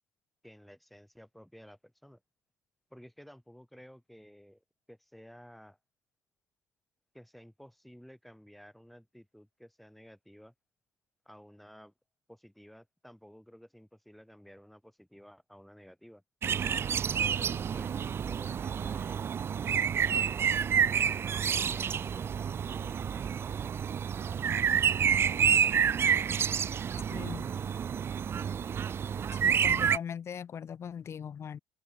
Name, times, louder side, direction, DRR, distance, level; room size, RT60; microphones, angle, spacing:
voice 1, 0.4-2.2 2.9-5.8 7.1-10.5 11.2-11.9 12.3-16.2 16.9-17.9 18.2-19.2 20.1-23.8, equal, ahead, 6.8 m, -54 dB
sound 1, 16.4-30.0, right 7 dB, 35° right, 0.4 m, -29 dB
voice 2, 27.1-27.5 29.3-31.6, left 8 dB, 40° left, 0.9 m, -40 dB
cardioid pair, 120°, 7 cm